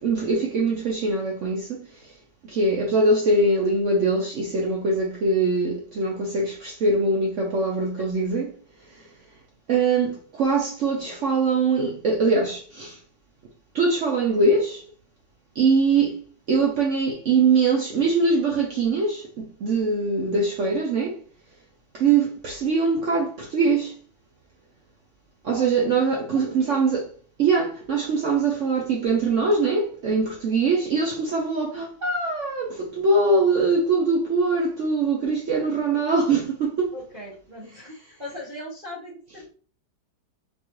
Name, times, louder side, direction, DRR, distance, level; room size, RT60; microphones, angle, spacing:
voice 1, 0.0-2.2 2.4-8.5 8.9-9.2 9.7-13.0 13.7-14.8 15.5-21.2 21.9-24.0 25.4-27.1 27.4-37.0, right 3 dB, 65° right, 0.7 m, -22 dB
voice 2, 26.3-26.9 36.9-39.5, left 1 dB, 35° right, 0.8 m, -39 dB
4.4 x 2.4 x 3.0 m
omnidirectional pair, 1.8 m